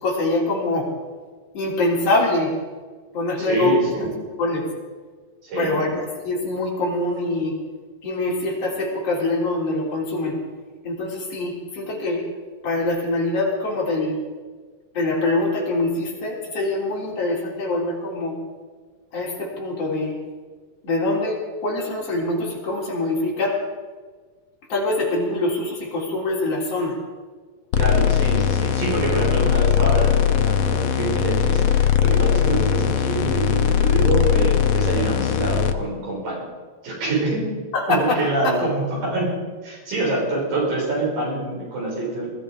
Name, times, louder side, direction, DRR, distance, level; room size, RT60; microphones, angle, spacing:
voice 1, 0.0-0.9 1.5-2.5 3.1-4.1 4.4-4.6 5.6-7.5 8.0-10.4 10.8-12.3 12.6-14.2 14.9-18.4 19.1-20.1 20.8-23.6 24.7-27.0 37.7-38.6, left 2 dB, 45° left, -3 dB, 4.5 m, -24 dB
voice 2, 3.4-4.1 5.4-5.9 27.8-36.4 36.8-37.5 37.9-42.3, right 2 dB, 75° right, -4 dB, 7.9 m, -25 dB
sound 1, 27.7-35.7, left 9 dB, 80° left, 1.4 m, -20 dB
20.5 x 13.5 x 5.0 m, 1.4 s
omnidirectional pair, 4.0 m